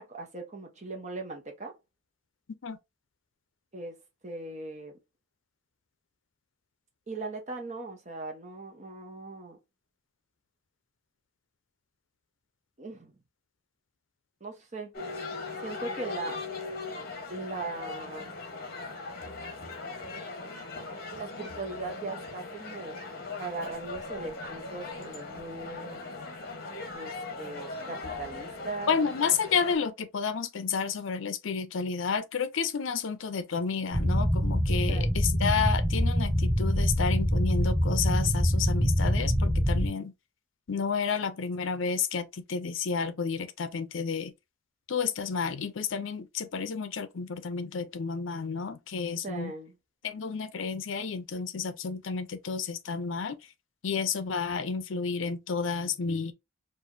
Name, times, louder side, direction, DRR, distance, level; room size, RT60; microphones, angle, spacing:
voice 1, 0.0-1.7 3.7-3.9 4.2-5.0 7.1-9.6 12.8-13.1 14.4-14.9 15.6-16.4 17.3-18.3 21.1-23.0 23.4-26.0 26.9-27.1 27.4-28.9 34.9-35.1 49.2-49.8, right 3 dB, 35° right, 0.9 m, -39 dB
sound 1, 14.9-29.8, left 3 dB, 45° left, 1.1 m, -39 dB
voice 2, 28.9-40.1 40.7-44.3 44.9-49.5 50.0-53.4 53.8-56.3, left 5 dB, 65° left, 0.5 m, -31 dB
sound 2, 33.9-39.9, equal, 10° left, 1.3 m, -25 dB
4.6 x 2.5 x 2.6 m
head